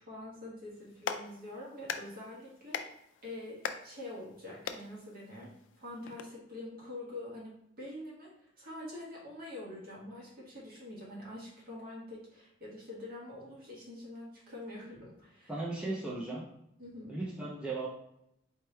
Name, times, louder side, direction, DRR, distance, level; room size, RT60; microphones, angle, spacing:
voice 1, 0.0-2.9 3.2-15.5 16.8-17.2, left 1 dB, 50° right, -5 dB, 1.6 m, -45 dB
Clapping, 0.7-6.2, left 7 dB, 70° left, 0.3 m, -43 dB
voice 2, 15.5-16.4 17.1-17.9, right 2 dB, 5° right, -5 dB, 0.5 m, -36 dB
4.3 x 3.1 x 3.3 m, 0.77 s
head